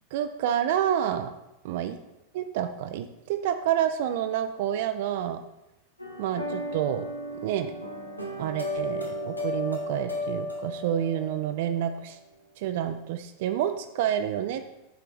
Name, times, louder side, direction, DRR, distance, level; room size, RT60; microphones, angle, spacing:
voice 1, 0.1-1.3 1.6-2.0 2.3-5.4 6.2-7.1 7.4-7.7 8.4-12.2 12.6-14.8, right 10 dB, 50° right, 9 dB, 0.3 m, -28 dB
sound 1, 6.0-11.9, left 1 dB, 85° left, 0.8 m, -34 dB
7.7 x 3.9 x 3.3 m, 0.93 s
figure-of-eight pair, 90°, 0 cm